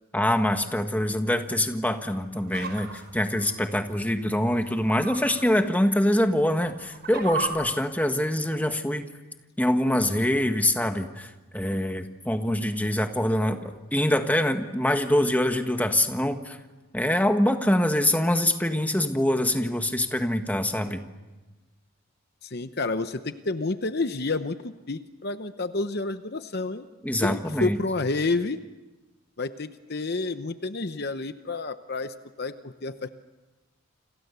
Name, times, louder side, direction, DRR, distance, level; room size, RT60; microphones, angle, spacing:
voice 1, 0.1-9.1 9.6-16.6 16.9-21.0 27.0-27.8, left 1 dB, 5° left, 6 dB, 1.5 m, -24 dB
sound 1, 2.3-3.7 4.6-5.3 5.7-5.8 6.5-7.5, right 5 dB, 45° right, 5.5 m, -35 dB
voice 2, 22.4-26.9 27.2-28.6 29.4-33.1, left 3 dB, 45° left, 10 dB, 0.8 m, -30 dB
29.5 x 27.0 x 6.9 m, 1.2 s
head